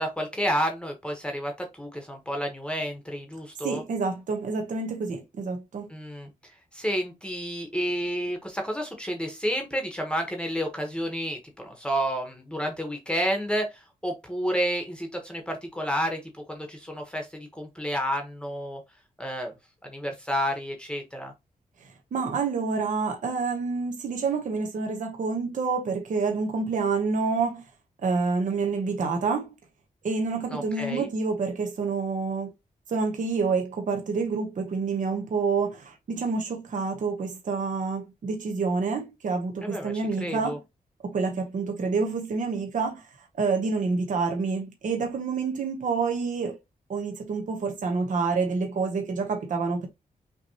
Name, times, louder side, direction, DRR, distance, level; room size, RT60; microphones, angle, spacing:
voice 1, 0.0-3.8 5.9-6.3 6.7-18.8 19.2-19.5 19.8-21.3 30.5-31.1 39.6-40.6, equal, 5° left, 1.0 m, -30 dB
voice 2, 3.6-5.9 21.8-27.6 28.0-29.5 30.0-32.5 32.9-40.6 41.0-43.1 43.3-46.6 46.9-49.9, right 4 dB, 60° right, 0.9 m, -28 dB
5.8 x 3.0 x 2.8 m
wide cardioid pair, 155°, 15 cm